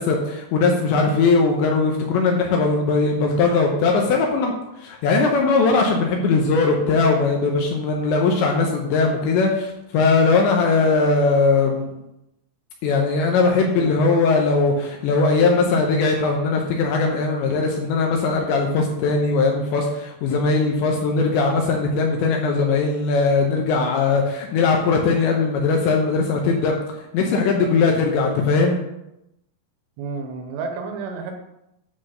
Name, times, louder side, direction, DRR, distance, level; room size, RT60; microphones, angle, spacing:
voice 1, 0.0-4.5 4.8-11.9 12.8-26.7 27.1-28.8, left 4 dB, 75° left, 1 dB, 2.8 m, -19 dB
voice 2, 30.0-31.4, right 4 dB, 80° right, 4 dB, 3.3 m, -31 dB
10.0 x 4.0 x 6.4 m, 0.86 s
omnidirectional pair, 6.0 m